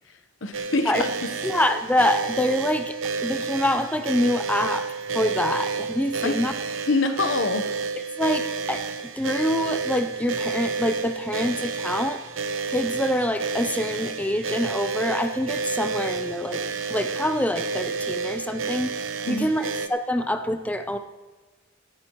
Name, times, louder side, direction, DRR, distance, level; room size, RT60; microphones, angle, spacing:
voice 1, 0.4-1.2 6.2-6.5 6.9-7.7 19.3-19.5, left 3 dB, 75° left, 8 dB, 1.0 m, -25 dB
sound 1, 0.5-19.9, right 5 dB, 90° right, 0.8 m, -30 dB
voice 2, 1.4-3.0 3.2-4.9 5.1-6.5 8.2-8.8 9.2-12.2 12.7-16.6 16.9-21.0, left 1 dB, 10° left, 7 dB, 0.6 m, -25 dB
17.5 x 14.0 x 3.1 m, 1.2 s
head